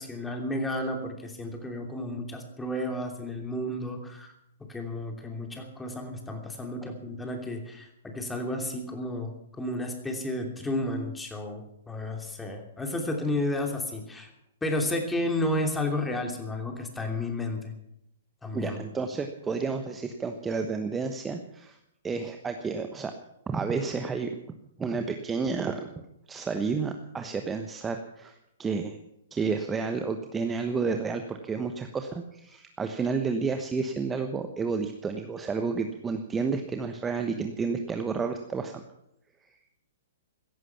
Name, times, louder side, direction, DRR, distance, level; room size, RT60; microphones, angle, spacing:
voice 1, 0.0-4.3 4.6-14.3 14.6-17.7 18.4-18.8, left 1 dB, 10° left, 3 dB, 2.9 m, -32 dB
voice 2, 18.5-21.8 22.0-23.1 23.5-24.3 24.8-25.9 26.3-29.0 29.3-38.8, right 4 dB, 15° right, 6 dB, 1.1 m, -31 dB
16.5 x 14.5 x 5.9 m, 0.81 s
figure-of-eight pair, 115°, 0 cm